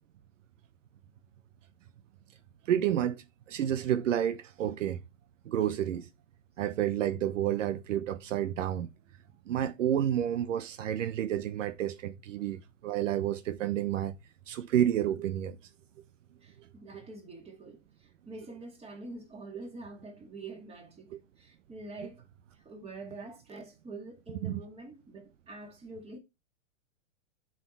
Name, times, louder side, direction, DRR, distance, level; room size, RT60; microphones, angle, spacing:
voice 1, 2.7-5.0 5.4-6.1 6.6-8.9 9.5-14.2 14.5-15.6 16.9-17.0 24.4-24.6, right 10 dB, 75° right, 0.9 m, -30 dB
voice 2, 16.4-22.3 22.5-26.2, right 2 dB, 15° right, 2.4 m, -46 dB
7.4 x 4.9 x 4.5 m
hypercardioid pair, 125°, 38 cm